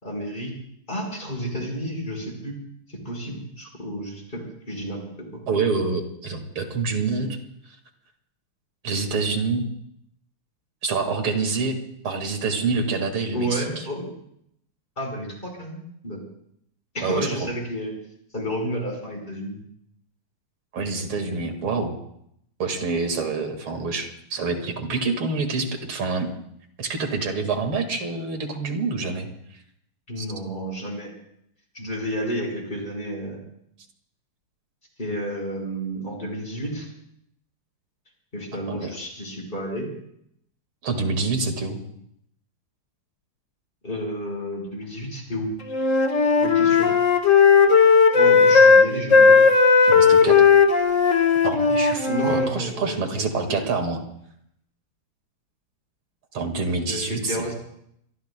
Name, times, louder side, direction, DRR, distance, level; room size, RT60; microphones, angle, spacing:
voice 1, 0.0-0.5 0.9-2.6 2.9-5.0 5.3-5.4 13.3-14.1 15.0-16.3 16.9-17.9 18.3-19.6 30.1-31.1 31.7-33.4 35.0-36.9 38.3-39.9 43.8-45.5 46.4-46.9 48.1-49.4 52.1-52.9 53.3-53.9 56.9-57.5, equal, 25° left, 0 dB, 4.8 m, -31 dB
voice 2, 5.5-7.4 8.8-9.6 10.8-13.8 17.0-17.5 20.7-22.0 22.6-26.3 26.8-29.3 30.2-30.3 38.7-38.9 40.8-41.8 49.9-50.4 51.4-54.0 56.3-57.5, right 4 dB, 85° right, 4 dB, 2.8 m, -27 dB
Wind instrument woodwind instrument, 45.7-52.5, left 5 dB, 40° left, 1.5 m, -16 dB
26.0 x 23.0 x 2.2 m, 0.73 s
omnidirectional pair, 2.3 m